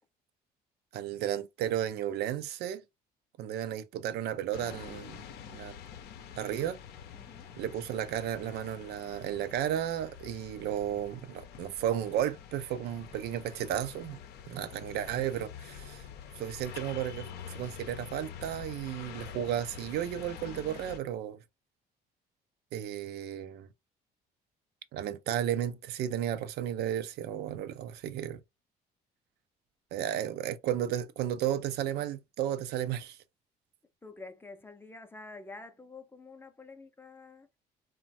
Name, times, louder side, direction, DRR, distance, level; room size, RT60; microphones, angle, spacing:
voice 1, 0.9-2.8 3.4-5.2 5.5-5.8 6.4-6.8 7.6-14.2 14.5-16.1 16.4-21.4 22.7-23.7 24.9-28.4 29.9-33.2, right 10 dB, 75° right, 0.4 m, -33 dB
sound 1, 4.5-21.0, left 8 dB, 75° left, 0.6 m, -47 dB
voice 2, 7.1-7.5 34.0-37.5, left 3 dB, 15° left, 0.5 m, -48 dB
3.0 x 2.1 x 2.6 m
cardioid pair, 110°, 17 cm